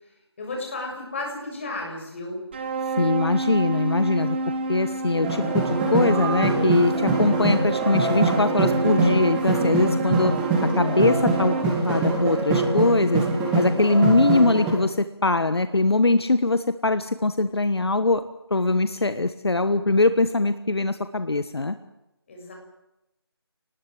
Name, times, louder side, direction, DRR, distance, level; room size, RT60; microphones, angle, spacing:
voice 1, 0.4-2.4 19.0-19.1 22.3-22.5, left 2 dB, 30° left, 1 dB, 6.9 m, -33 dB
sound 1, 2.5-11.6, right 3 dB, 25° right, 2.1 m, -29 dB
voice 2, 3.0-4.4 4.7-10.3 10.8-11.5 11.8-13.2 13.5-18.2 18.5-21.7, left 2 dB, 70° left, 11 dB, 1.5 m, -22 dB
sound 2, 5.2-14.7, right 3 dB, 5° right, 2.0 m, -24 dB
27.5 x 19.5 x 7.7 m, 0.89 s
figure-of-eight pair, 170°, 14 cm